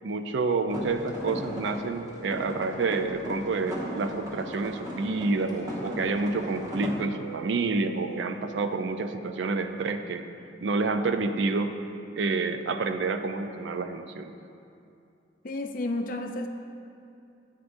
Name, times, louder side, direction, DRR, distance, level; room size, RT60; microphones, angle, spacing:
voice 1, 0.0-10.2 10.6-11.8 12.2-14.3, right 3 dB, 85° right, 8 dB, 0.4 m, -28 dB
sound 1, 0.7-6.9, equal, 20° right, 1.2 m, -38 dB
sound 2, 1.8-9.0, right 6 dB, 65° right, 1.3 m, -46 dB
voice 2, 15.4-16.5, left 2 dB, 50° left, 5 dB, 0.5 m, -31 dB
9.5 x 8.3 x 2.6 m, 2.6 s
head